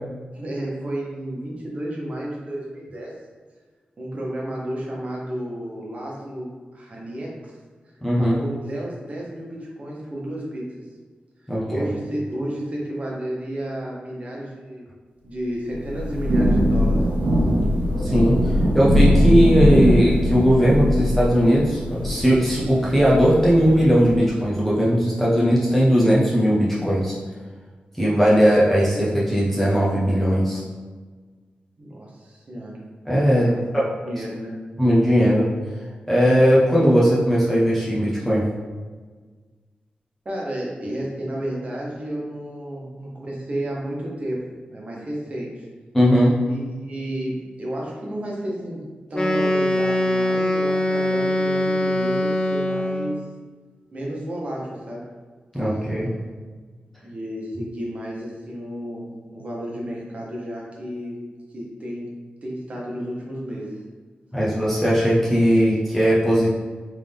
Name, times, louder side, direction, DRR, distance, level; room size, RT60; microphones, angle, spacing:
voice 1, 0.3-3.1 4.0-7.5 8.2-10.6 11.4-14.9 15.2-17.0 31.8-32.8 33.4-33.7 34.0-34.6 40.2-44.4 44.7-45.7 46.4-48.8 49.1-53.2 53.9-55.0 57.0-61.2 61.5-62.1 62.4-63.7, right 1 dB, 45° right, -4 dB, 1.2 m, -32 dB
voice 2, 8.0-8.4 11.5-11.9 18.0-27.1 28.0-30.6 33.1-33.5 33.7-33.8 34.8-35.5 36.1-38.4 45.9-46.3 55.5-56.1 64.3-66.5, equal, 5° left, -7 dB, 0.9 m, -18 dB
Thunder / Rain, 15.7-24.3, equal, 80° right, 0.9 m, -21 dB
Wind instrument woodwind instrument, 49.1-53.2, left 1 dB, 25° left, 0.5 m, -22 dB
3.7 x 3.7 x 3.5 m, 1.4 s
wide cardioid pair, 125°, 3 cm